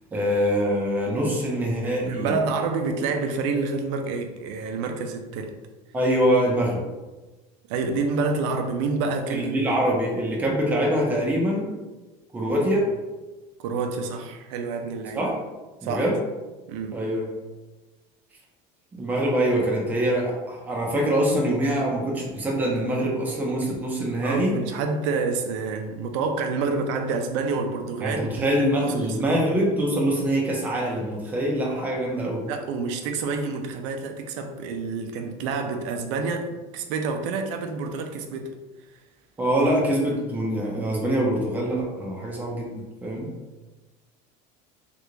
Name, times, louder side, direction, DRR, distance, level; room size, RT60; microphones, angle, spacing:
voice 1, 0.1-2.4 5.9-6.8 9.3-11.7 12.3-12.9 15.1-15.3 15.8-16.2 16.9-17.2 18.9-24.6 28.0-32.5 39.4-43.3, right 1 dB, 10° right, -2 dB, 0.6 m, -24 dB
voice 2, 2.0-5.5 7.7-9.7 13.6-15.2 15.8-16.1 16.7-17.0 24.2-28.4 28.8-29.4 32.5-38.5, right 4 dB, 85° right, 5 dB, 0.5 m, -28 dB
3.3 x 2.5 x 3.1 m, 1.1 s
cardioid pair, 170°, 15 cm